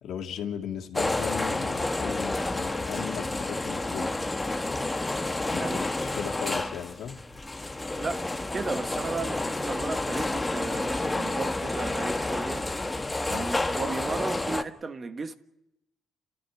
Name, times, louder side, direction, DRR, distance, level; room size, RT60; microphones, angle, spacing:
voice 1, 0.0-4.2 5.5-7.2 13.3-13.5, left 8 dB, 75° left, 2.2 m, -37 dB
sound 1, 0.9-14.6, left 2 dB, 15° left, 1.2 m, -30 dB
voice 2, 8.0-12.7 13.3-15.4, right 4 dB, 35° right, 1.4 m, -35 dB
29.5 x 13.0 x 10.0 m
cardioid pair, 90°, 0 cm